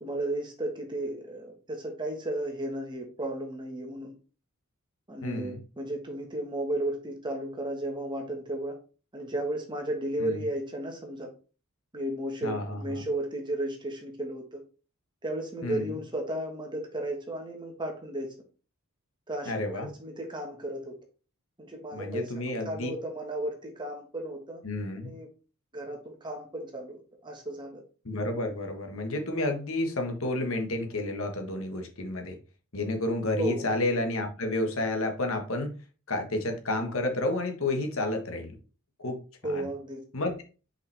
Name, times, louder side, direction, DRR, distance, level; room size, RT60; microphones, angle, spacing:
voice 1, 0.0-4.1 5.1-8.7 9.1-11.3 11.9-14.6 15.2-18.3 19.3-20.9 21.6-24.6 24.9-25.3 25.7-27.8 33.4-33.7 39.4-40.0, right 1 dB, 20° right, 2 dB, 1.6 m, -34 dB
voice 2, 5.2-5.6 10.2-10.4 12.4-13.0 15.6-15.9 19.4-19.9 21.9-22.9 24.6-25.1 28.0-32.4 32.7-35.7 36.1-38.5 39.0-39.7 40.1-40.4, left 2 dB, 65° left, 4 dB, 1.4 m, -31 dB
5.8 x 5.6 x 3.4 m, 0.35 s
head